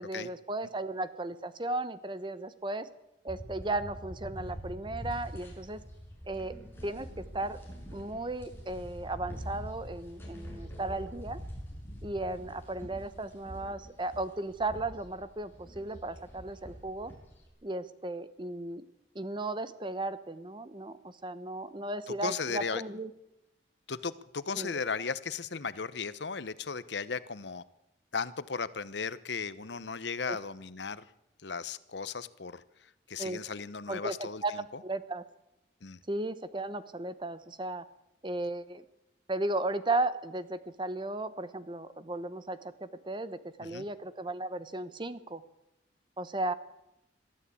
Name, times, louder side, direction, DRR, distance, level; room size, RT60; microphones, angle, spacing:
voice 1, 0.0-2.9 3.2-5.8 6.3-6.5 6.8-7.1 7.3-7.6 7.9-11.4 12.0-17.1 17.6-18.8 19.1-23.1 24.5-24.8 30.3-30.4 33.2-33.4 33.9-34.5 34.8-35.2 36.1-37.8 38.2-38.8 39.3-45.4 46.2-46.5, right 2 dB, 25° right, 13 dB, 1.0 m, -35 dB
sound 1, 3.3-17.5, equal, 15° left, 6.2 m, -45 dB
voice 2, 22.1-22.8 23.9-27.6 28.1-31.0 31.4-32.6 33.1-34.4 35.8-36.0 43.6-43.9, left 5 dB, 75° left, 16 dB, 0.9 m, -36 dB
22.5 x 13.5 x 8.5 m, 0.88 s
head